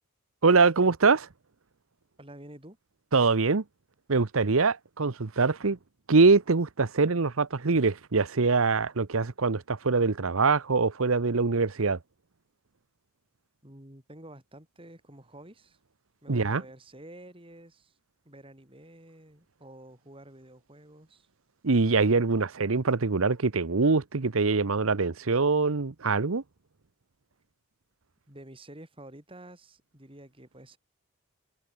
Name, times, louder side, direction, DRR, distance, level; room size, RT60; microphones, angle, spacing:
voice 1, 0.4-1.3 3.1-3.6 4.1-5.8 6.1-12.0 16.3-16.6 21.6-26.4, right 4 dB, 70° right, 0.9 m, -24 dB
voice 2, 2.2-2.8 13.6-15.8 16.2-17.9 18.3-21.3 28.3-30.8, right 1 dB, 25° right, 3.5 m, -49 dB
head